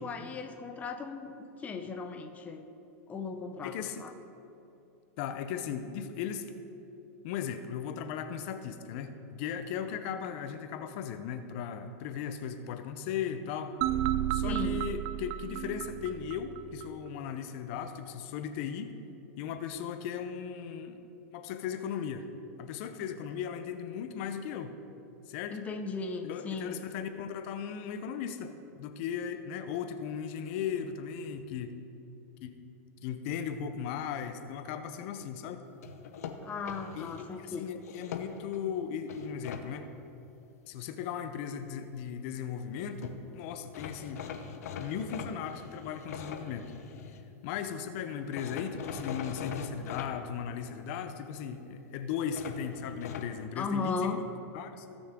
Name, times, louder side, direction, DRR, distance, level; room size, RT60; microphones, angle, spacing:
voice 1, 0.0-2.6 3.1-4.1 14.4-14.9 25.5-26.8 36.4-37.6 53.6-54.2, left 4 dB, 15° left, 4 dB, 0.7 m, -37 dB
voice 2, 3.6-4.0 5.2-6.5 7.2-13.8 14.3-19.0 19.4-21.0 21.3-22.3 22.6-24.7 25.3-25.6 26.2-31.8 32.4-32.6 33.0-35.6 36.9-39.9 40.7-44.2 44.8-46.7 47.4-54.2 54.5-54.9, left 8 dB, 55° left, 8 dB, 0.7 m, -37 dB
sound 1, 13.8-16.9, right 13 dB, 40° right, 0.3 m, -32 dB
sound 2, 35.8-37.3 37.8-38.6 39.1-39.6 42.7-42.8 43.0-43.2 43.7-47.2 48.3-50.1 52.3-53.3, left 7 dB, 80° left, 0.9 m, -41 dB
17.0 x 6.2 x 3.7 m, 2.8 s
supercardioid pair, 135°, 8 cm